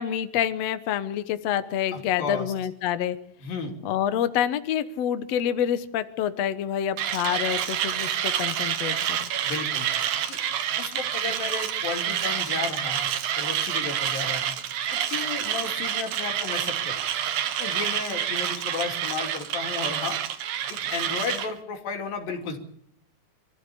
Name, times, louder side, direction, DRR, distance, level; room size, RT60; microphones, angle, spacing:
voice 1, 0.0-3.2 3.8-9.3, left 10 dB, 65° left, 11 dB, 1.8 m, -27 dB
voice 2, 1.9-2.5 3.4-3.7 9.4-9.9 10.3-10.4 10.8-14.5 15.1-17.0 17.6-20.2 20.7-22.6, left 4 dB, 80° left, 4 dB, 4.5 m, -33 dB
Mechanisms, 7.0-21.5, right 10 dB, 85° right, 3.1 m, -28 dB
25.0 x 14.5 x 8.5 m, 0.71 s
omnidirectional pair, 4.0 m